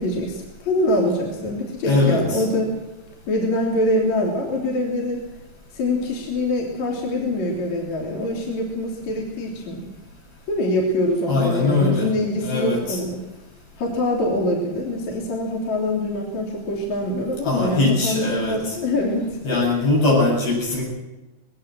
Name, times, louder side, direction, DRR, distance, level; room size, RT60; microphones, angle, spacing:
voice 1, 0.0-2.7 3.3-5.2 5.7-9.9 10.5-13.2 13.8-19.6 20.3-20.4, left 1 dB, 50° left, -1 dB, 4.4 m, -24 dB
voice 2, 1.8-2.4 11.3-12.1 12.4-13.0 17.4-18.8 19.4-20.8, left 3 dB, 75° left, -1 dB, 9.4 m, -21 dB
21.0 x 18.5 x 7.7 m, 1.1 s
omnidirectional pair, 4.4 m